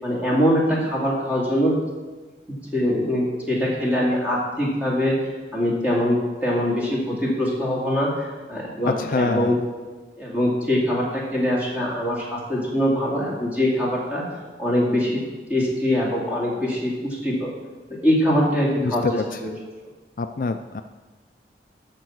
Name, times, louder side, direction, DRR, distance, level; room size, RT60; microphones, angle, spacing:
voice 1, 0.0-1.7 2.7-5.2 5.5-9.6 10.2-14.2 14.6-15.2 15.5-17.5 18.0-19.0 19.4-19.5, equal, 10° right, -5 dB, 2.3 m, -23 dB
voice 2, 8.9-9.6 18.8-19.4 20.2-20.8, left 4 dB, 50° left, 8 dB, 0.4 m, -26 dB
13.0 x 4.6 x 6.2 m, 1.3 s
head